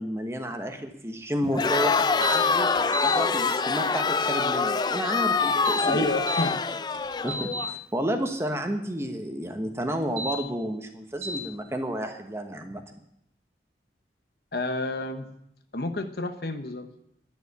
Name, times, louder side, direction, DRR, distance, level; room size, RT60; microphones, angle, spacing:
voice 1, 0.0-2.7 3.0-6.1 7.2-12.8, equal, 15° right, 5 dB, 1.1 m, -31 dB
Crowd, 1.5-7.7, left 4 dB, 25° left, 0.4 m, -25 dB
sound 1, 2.2-2.4 2.8-3.2 5.5-6.5 6.9-7.7 10.0-10.4 11.2-11.4, equal, 50° right, 1.9 m, -31 dB
voice 2, 5.8-6.6 14.5-15.3 15.7-16.9, left 2 dB, 60° left, 9 dB, 0.9 m, -29 dB
10.5 x 7.1 x 9.4 m, 0.78 s
head